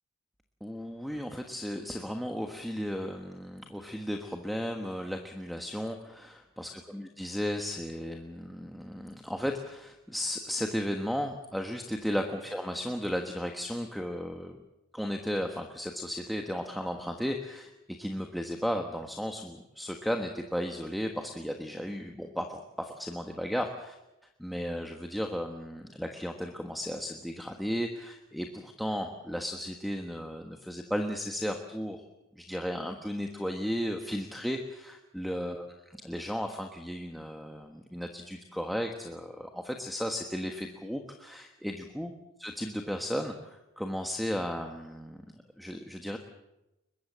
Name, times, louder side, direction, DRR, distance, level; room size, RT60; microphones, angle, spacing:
voice 1, 0.6-14.6 14.9-17.7 18.0-24.0 24.4-32.0 32.4-35.7 36.0-42.1 42.4-45.2 45.6-46.2, equal, ahead, 3 dB, 1.4 m, -35 dB
22.5 x 22.0 x 7.5 m, 0.95 s
head